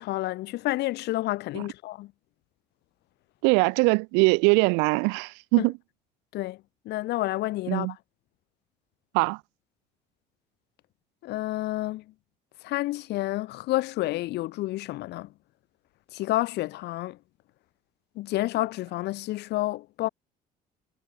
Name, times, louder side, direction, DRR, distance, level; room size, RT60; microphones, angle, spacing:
voice 1, 0.0-2.1 5.6-5.7 6.3-6.6 6.9-7.9 11.2-12.0 12.6-15.3 16.1-17.2 18.2-20.1, left 17 dB, 75° left, 3.5 m, -29 dB
voice 2, 3.4-5.7 7.7-7.9 9.1-9.4, right 34 dB, 85° right, 2.5 m, -22 dB
supercardioid pair, 70°, 17 cm